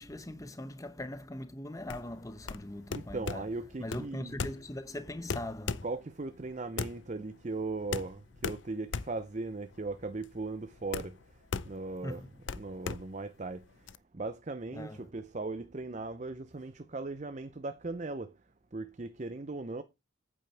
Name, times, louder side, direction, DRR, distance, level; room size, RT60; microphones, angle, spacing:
voice 1, 0.0-3.4 3.8-5.8 12.0-12.3 14.7-15.1, left 1 dB, 15° left, 0.9 m, -41 dB
sound 1, 1.8-14.0, left 5 dB, 70° left, 0.5 m, -39 dB
voice 2, 2.9-4.3 5.8-11.2 11.7-12.2 12.5-13.6 14.1-18.3 18.7-19.8, right 3 dB, 35° right, 0.6 m, -38 dB
8.8 x 8.6 x 3.4 m
head